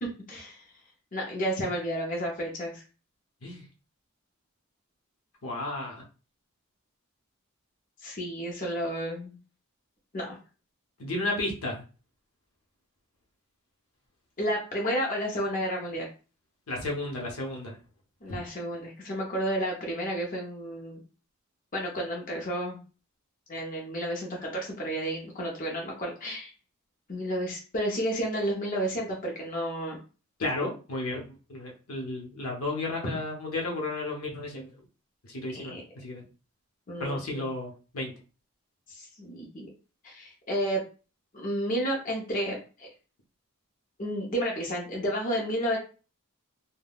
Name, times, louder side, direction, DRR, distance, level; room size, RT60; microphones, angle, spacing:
voice 1, 0.0-0.6 1.1-2.8 8.0-9.4 10.1-10.4 14.4-16.1 18.2-21.0 21.7-22.8 23.5-26.5 27.1-30.0 35.5-35.8 36.9-37.4 38.9-39.7 40.0-40.8 41.3-42.9 44.0-45.8, equal, 35° left, -2 dB, 0.6 m, -31 dB
voice 2, 5.4-6.0 11.0-11.8 16.7-17.8 30.4-34.7 35.3-35.7 36.0-36.2 37.0-38.1, left 2 dB, 70° left, 0 dB, 0.8 m, -33 dB
3.4 x 2.2 x 2.3 m, 0.35 s
head